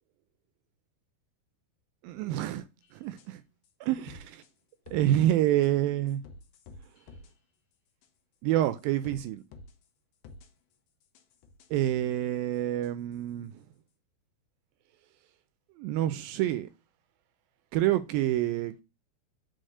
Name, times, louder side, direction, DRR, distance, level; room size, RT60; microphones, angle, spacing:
voice 1, 2.0-2.6 2.9-3.4 3.8-4.2 4.9-6.2 8.4-9.4 11.7-13.5 15.8-16.7 17.7-18.8, right 13 dB, 80° right, 2.1 m, -27 dB
sound 1, 2.8-2.9 3.2-3.3 3.6-3.7 4.1-4.5 4.9-5.3 5.6-5.7 6.1-7.3 8.0-8.1 8.6-9.2 9.5-9.8 10.2-10.5 11.0-11.8 12.8-12.9, left 3 dB, 75° left, 2.8 m, -50 dB
6.5 x 4.3 x 6.3 m
omnidirectional pair, 4.5 m